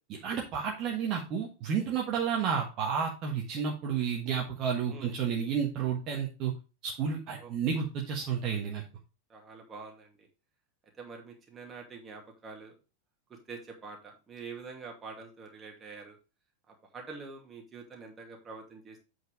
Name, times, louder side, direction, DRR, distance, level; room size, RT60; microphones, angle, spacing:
voice 1, 0.1-6.5 6.8-8.8, right 7 dB, 35° right, 0 dB, 1.5 m, -31 dB
voice 2, 9.3-10.3 11.0-12.7 13.3-16.2 16.9-19.0, right 4 dB, 20° right, 1 dB, 2.5 m, -46 dB
8.1 x 4.8 x 4.7 m, 0.31 s
figure-of-eight pair, 90°, 0 cm